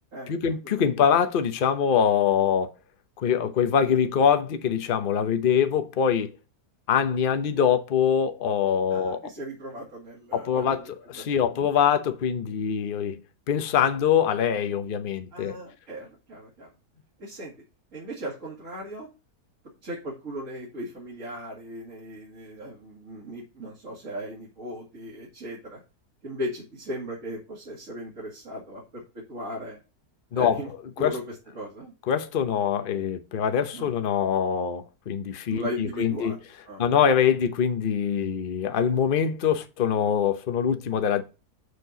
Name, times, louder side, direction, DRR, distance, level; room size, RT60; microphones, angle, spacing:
voice 1, 0.3-2.7 3.2-6.3 6.9-9.3 10.3-13.2 13.5-15.6 30.3-30.6 31.0-31.2 32.1-36.4 36.8-41.2, left 8 dB, 40° left, 0.8 m, -24 dB
voice 2, 8.9-11.2 15.3-16.7 17.2-17.5 17.9-19.1 19.8-25.8 26.2-29.8 30.3-30.7 31.0-31.9 33.7-33.9 35.5-36.4 36.7-36.8, equal, 50° right, 2.6 m, -37 dB
6.5 x 4.5 x 6.6 m
omnidirectional pair, 1.7 m